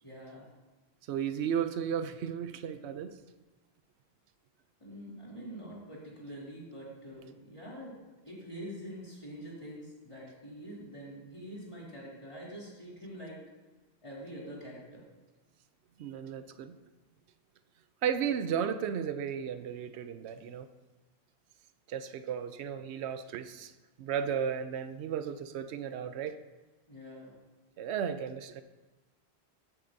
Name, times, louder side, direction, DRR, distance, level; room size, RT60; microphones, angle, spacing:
voice 1, 0.0-0.5 4.8-13.4 14.0-15.0 26.9-27.4, equal, 30° left, -5 dB, 3.1 m, -45 dB
voice 2, 1.1-3.1 16.0-16.8 18.0-20.7 21.9-23.7 24.0-26.4 27.8-28.6, right 8 dB, 85° right, 11 dB, 0.9 m, -34 dB
15.5 x 8.6 x 2.7 m, 1.2 s
omnidirectional pair, 1.1 m